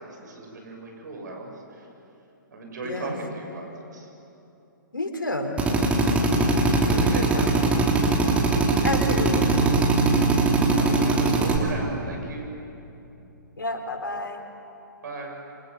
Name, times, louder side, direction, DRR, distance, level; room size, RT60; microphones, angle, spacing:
voice 1, 0.0-1.9 2.5-4.1 6.5-7.8 10.7-12.5 15.0-15.4, right 2 dB, 60° right, 1 dB, 7.2 m, -37 dB
voice 2, 2.8-3.1 4.9-5.6 6.9-7.6 8.8-9.7 13.6-14.4, left 2 dB, 80° left, 4 dB, 4.2 m, -30 dB
Drill, 5.6-11.6, right 3 dB, 10° right, 2.9 m, -21 dB
28.0 x 24.5 x 7.9 m, 2.9 s
figure-of-eight pair, 120°, 11 cm